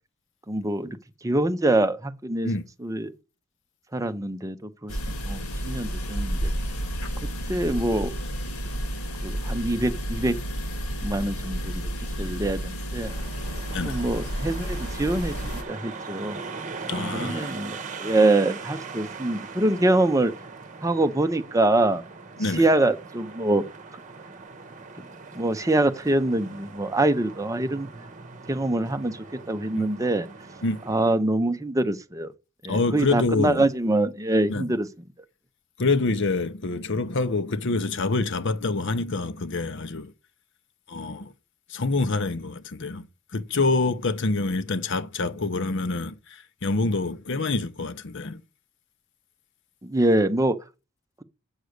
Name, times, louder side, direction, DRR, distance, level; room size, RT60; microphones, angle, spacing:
voice 1, 0.5-1.0 1.2-2.5 2.8-3.1 3.9-6.5 7.5-8.1 9.2-10.4 11.0-11.8 12.2-13.1 13.8-16.4 17.0-20.3 20.8-22.0 22.5-23.6 25.3-27.9 28.5-30.3 30.9-32.3 32.6-34.9 49.8-50.6, right 2 dB, 15° right, 0.7 m, -24 dB
sound 1, 4.9-15.6, equal, 90° left, 1.8 m, -31 dB
sound 2, 13.0-31.1, right 4 dB, 35° right, 1.2 m, -40 dB
voice 2, 16.9-17.6 22.4-22.7 29.7-29.9 30.6-30.8 32.7-33.7 34.5-34.7 35.8-40.1 40.9-41.3 41.7-43.0 43.3-48.4, left 3 dB, 55° left, 0.8 m, -26 dB
8.1 x 6.3 x 6.5 m
head